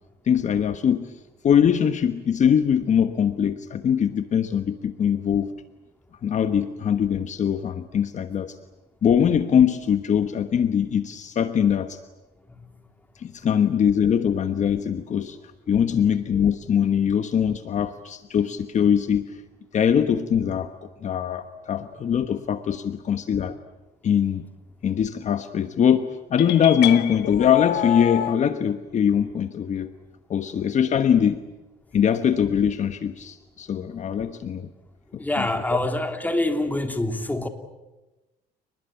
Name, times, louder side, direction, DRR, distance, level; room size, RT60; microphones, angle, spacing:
voice 1, 0.2-1.2 1.4-5.5 6.2-8.6 9.0-12.0 13.2-15.4 15.7-19.4 19.7-23.5 24.0-24.5 24.8-29.9 30.3-31.4 31.9-34.7 35.1-35.5, left 8 dB, 45° left, 9 dB, 1.2 m, -22 dB
sound 1, 26.4-28.4, left 12 dB, 75° left, 1.9 m, -28 dB
voice 2, 35.2-37.5, left 1 dB, 10° left, 6 dB, 3.1 m, -26 dB
30.0 x 20.0 x 9.1 m, 1.1 s
cardioid pair, 110°, 17 cm